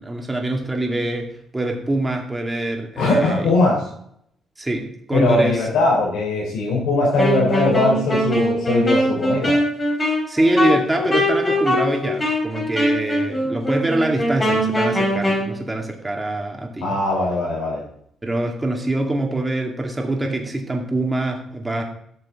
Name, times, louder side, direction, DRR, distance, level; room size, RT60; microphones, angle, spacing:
voice 1, 0.0-3.5 4.6-5.7 10.3-17.0 18.2-21.8, right 2 dB, 15° right, 2 dB, 2.2 m, -24 dB
voice 2, 3.0-3.8 5.1-9.5 16.8-17.8, left 2 dB, 80° left, -3 dB, 3.5 m, -20 dB
Wind instrument woodwind instrument, 7.1-15.5, equal, 25° left, 4.0 m, -21 dB
12.5 x 6.8 x 3.7 m, 0.68 s
cardioid pair, 90°, 0 cm